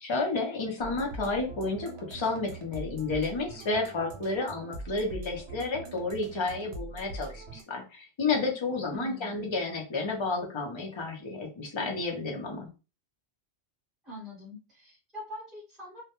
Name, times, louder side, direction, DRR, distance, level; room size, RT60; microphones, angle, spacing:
voice 1, 0.0-12.7, left 3 dB, 35° left, 1 dB, 0.6 m, -31 dB
sound 1, 0.8-7.6, right 3 dB, 80° right, 0.9 m, -43 dB
voice 2, 8.9-9.5 14.0-16.0, left 1 dB, ahead, -5 dB, 1.0 m, -43 dB
2.2 x 2.1 x 2.9 m, 0.31 s
omnidirectional pair, 1.1 m